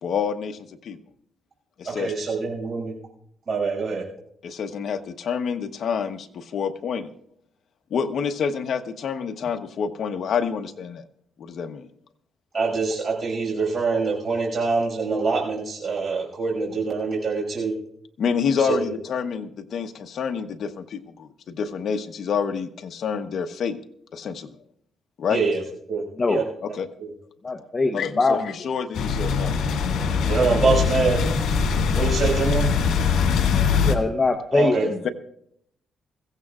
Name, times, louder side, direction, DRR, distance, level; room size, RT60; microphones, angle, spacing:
voice 1, 0.0-1.0 1.8-2.3 4.4-7.1 7.9-11.0 11.4-11.9 18.2-23.8 24.1-24.5 25.2-25.4 26.6-26.9 27.9-28.4 28.6-29.6 34.8-35.1, left 6 dB, 55° left, 6 dB, 1.0 m, -28 dB
voice 2, 1.9-2.9 3.5-4.0 12.5-17.7 18.6-18.8 25.3-25.6 25.9-26.0 26.3-26.4 27.0-27.1 30.3-31.2 31.9-32.6 34.5-34.9, right 4 dB, 40° right, -1 dB, 5.9 m, -24 dB
voice 3, 26.2-26.6 27.4-28.7 33.8-35.1, left 3 dB, 25° left, 6 dB, 0.8 m, -23 dB
sound 1, 28.9-34.0, left 5 dB, 85° left, 1.8 m, -22 dB
21.5 x 16.0 x 2.4 m, 0.70 s
cardioid pair, 140°, 0 cm